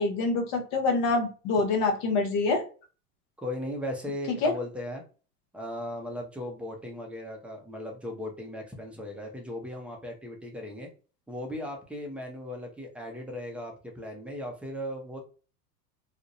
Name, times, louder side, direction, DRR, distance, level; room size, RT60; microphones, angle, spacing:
voice 1, 0.0-2.6 4.3-4.5, left 3 dB, 50° left, 4 dB, 0.8 m, -26 dB
voice 2, 3.4-5.0 5.5-10.9 11.3-15.2, left 1 dB, 5° right, 2 dB, 0.4 m, -37 dB
2.5 x 2.1 x 2.4 m, 0.37 s
hypercardioid pair, 95°, 45 cm